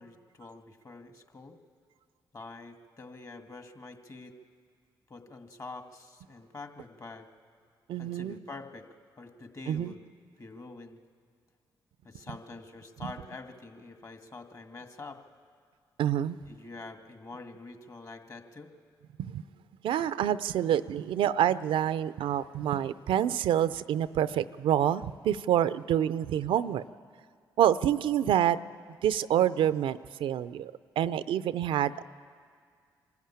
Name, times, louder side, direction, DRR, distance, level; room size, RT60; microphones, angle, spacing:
voice 1, 0.0-1.6 2.3-4.3 5.1-7.3 8.0-8.9 9.2-10.0 10.4-11.0 12.0-15.2 16.5-18.7, left 3 dB, 40° left, 6 dB, 2.0 m, -46 dB
voice 2, 7.9-8.4 9.7-9.9 16.0-16.4 19.3-19.4 19.8-26.8 27.6-28.6 29.0-32.0, right 10 dB, 75° right, 15 dB, 0.5 m, -27 dB
24.0 x 13.0 x 8.9 m, 2.1 s
supercardioid pair, 50°, 9 cm